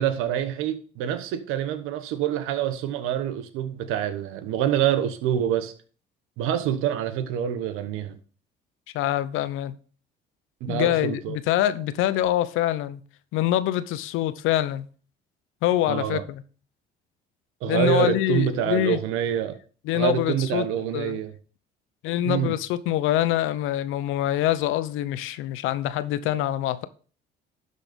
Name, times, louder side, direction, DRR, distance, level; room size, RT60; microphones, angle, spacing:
voice 1, 0.0-5.7 6.4-8.2 10.6-11.4 15.9-16.2 17.6-19.6 19.9-21.3 22.2-22.5, right 10 dB, 80° right, 1.2 m, -26 dB
voice 2, 8.9-9.7 10.7-13.0 13.3-14.9 15.6-16.4 17.7-19.0 19.9-20.7 20.9-21.2 22.0-26.9, left 13 dB, 75° left, 0.8 m, -25 dB
11.5 x 4.1 x 5.2 m
supercardioid pair, 80°, 21 cm